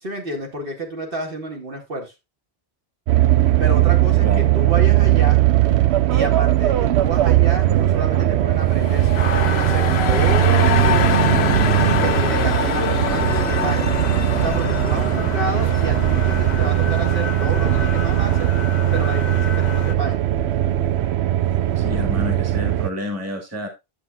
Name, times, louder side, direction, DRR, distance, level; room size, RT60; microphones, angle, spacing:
voice 1, 0.0-2.1 3.6-5.4 6.1-11.2 12.0-13.9 14.4-18.6 18.9-20.2, right 1 dB, 60° right, 1 dB, 2.0 m, -30 dB
sound 1, 3.1-22.9, right 13 dB, 90° right, 0.8 m, -19 dB
voice 2, 4.2-4.5 21.7-23.7, left 1 dB, 15° right, 4 dB, 1.6 m, -29 dB
sound 2, 8.6-17.4, left 10 dB, 80° left, 0.9 m, -26 dB
sound 3, 9.2-19.9, left 6 dB, 50° left, 0.7 m, -31 dB
10.0 x 6.9 x 2.3 m, 0.23 s
omnidirectional pair, 1.1 m